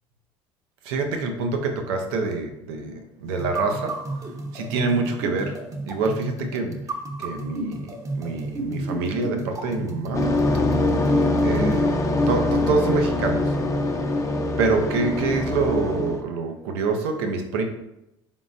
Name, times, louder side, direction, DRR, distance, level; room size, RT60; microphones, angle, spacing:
voice 1, 0.8-4.0 4.5-5.6 5.8-6.8 7.2-7.9 8.2-10.3 11.4-12.0 12.3-13.5 14.6-17.6, right 3 dB, 80° right, 4 dB, 0.6 m, -26 dB
sound 1, 3.4-11.9, right 2 dB, 25° right, 0.7 m, -32 dB
sound 2, 10.1-16.2, left 2 dB, 25° left, 0.6 m, -23 dB
4.0 x 3.6 x 2.5 m, 0.87 s
hypercardioid pair, 70°, 13 cm